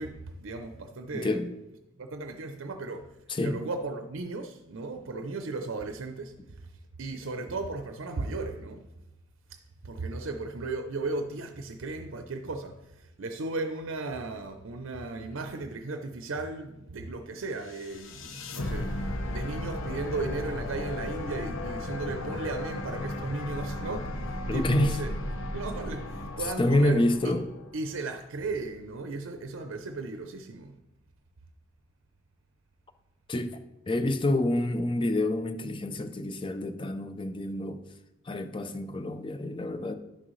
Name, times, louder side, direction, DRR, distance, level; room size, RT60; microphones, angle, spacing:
voice 1, 0.0-1.4 2.0-3.2 3.4-8.9 9.5-18.9 19.3-25.1 25.5-27.0 27.7-30.8, right 3 dB, 75° right, 0.6 m, -36 dB
voice 2, 1.1-1.5 3.3-3.6 24.5-25.0 26.6-27.4 33.3-33.6 33.9-37.8 38.3-39.9, left 1 dB, 25° left, 0.5 m, -27 dB
sound 1, 17.6-27.8, left 1 dB, 75° left, 0.9 m, -35 dB
11.0 x 6.2 x 3.1 m
head